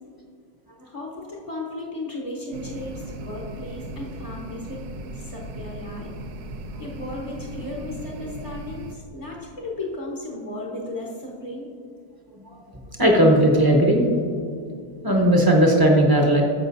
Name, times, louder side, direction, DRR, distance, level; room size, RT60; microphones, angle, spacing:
voice 1, 0.8-6.1 6.8-11.7, left 2 dB, 25° left, -3 dB, 0.9 m, -35 dB
sound 1, 2.5-9.0, right 1 dB, 80° right, 1.2 m, -37 dB
voice 2, 12.3-14.1 15.0-16.4, right 1 dB, 15° right, 0 dB, 0.8 m, -18 dB
14.5 x 5.5 x 2.6 m, 2.3 s
omnidirectional pair, 1.7 m